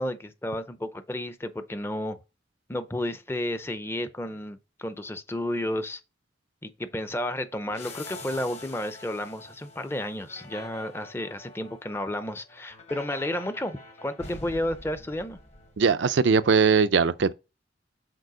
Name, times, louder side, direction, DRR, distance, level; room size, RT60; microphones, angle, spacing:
voice 1, 0.0-2.2 2.7-6.0 6.6-15.4, left 1 dB, 15° left, 0.6 m, -32 dB
sound 1, 7.7-16.2, left 2 dB, 35° left, 1.2 m, -45 dB
voice 2, 15.8-17.3, right 5 dB, 75° right, 0.5 m, -20 dB
6.7 x 4.3 x 4.9 m
head